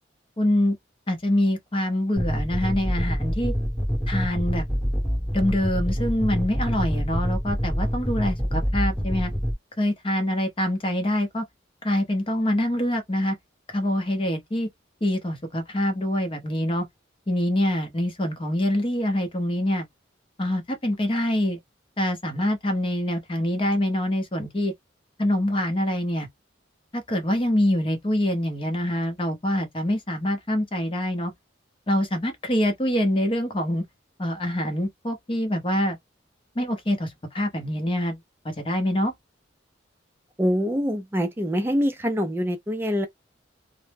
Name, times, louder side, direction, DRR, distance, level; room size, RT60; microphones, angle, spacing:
voice 1, 0.4-0.8 1.1-3.5 4.1-4.6 5.3-9.3 9.8-11.4 11.8-13.4 13.7-14.7 15.0-16.8 17.3-19.9 20.4-21.6 22.0-24.7 25.2-26.3 26.9-31.3 31.9-33.8 34.2-36.0 36.6-38.2 38.4-39.1, left 1 dB, 30° left, 0.6 m, -25 dB
sound 1, 2.2-9.5, equal, 10° left, 1.0 m, -26 dB
voice 2, 40.4-43.1, equal, 10° right, 0.3 m, -24 dB
2.0 x 2.0 x 3.2 m
head